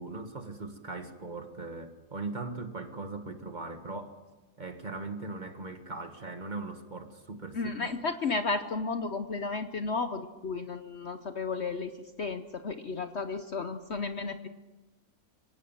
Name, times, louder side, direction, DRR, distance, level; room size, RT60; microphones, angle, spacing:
voice 1, 0.0-4.2 4.6-7.9, right 3 dB, 30° right, 7 dB, 1.6 m, -39 dB
voice 2, 7.5-14.5, left 4 dB, 50° left, 9 dB, 1.0 m, -33 dB
26.0 x 18.0 x 7.3 m, 1.2 s
omnidirectional pair, 1.7 m